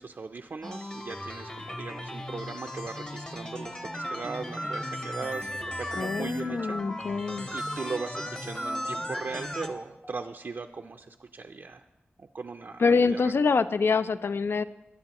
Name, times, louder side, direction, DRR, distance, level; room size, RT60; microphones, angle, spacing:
voice 1, 0.0-7.2 7.5-11.8 12.2-13.3, right 4 dB, 55° right, 4 dB, 0.4 m, -39 dB
sound 1, 0.6-9.7, left 1 dB, 20° left, 1.0 m, -38 dB
sound 2, 3.7-4.2 4.6-4.8 5.4-10.6, equal, 5° left, 0.6 m, -38 dB
voice 2, 6.0-7.5 12.8-14.6, left 4 dB, 70° left, 13 dB, 0.4 m, -25 dB
21.0 x 9.7 x 2.9 m, 0.99 s
wide cardioid pair, 95°, 4 cm